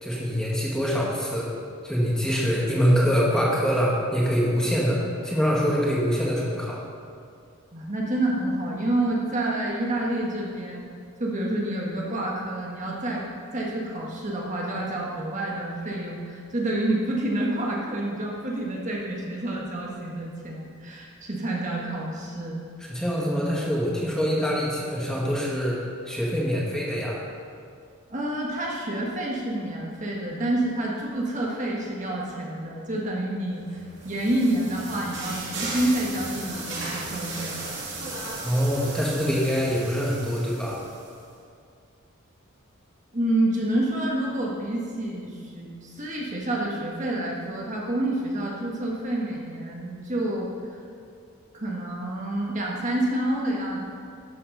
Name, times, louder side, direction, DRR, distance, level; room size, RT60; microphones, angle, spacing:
voice 1, 0.0-1.5 1.8-6.8 22.9-25.8 26.1-27.2 38.4-40.8, equal, 5° left, -5 dB, 1.7 m, -24 dB
voice 2, 7.7-10.9 11.2-13.2 13.5-22.6 28.1-37.6 43.1-50.8 51.5-53.8, right 1 dB, 35° right, -3 dB, 1.4 m, -28 dB
sound 1, 33.7-41.2, right 2 dB, 55° right, 2.6 m, -36 dB
12.0 x 7.7 x 5.4 m, 2.3 s
head